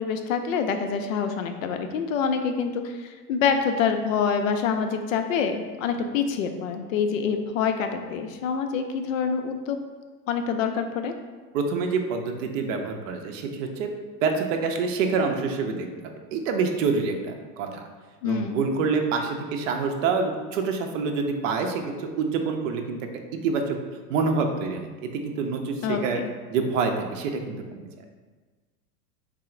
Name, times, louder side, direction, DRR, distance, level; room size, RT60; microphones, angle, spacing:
voice 1, 0.0-9.8 10.3-11.1 18.2-18.6 25.8-26.3, left 6 dB, 55° left, 6 dB, 0.5 m, -26 dB
voice 2, 11.5-13.9 14.2-17.8 18.2-23.0 23.3-23.8 24.1-26.2 26.5-27.9, right 4 dB, 55° right, 4 dB, 0.6 m, -27 dB
3.6 x 2.0 x 4.3 m, 1.4 s
figure-of-eight pair, 90°, 48 cm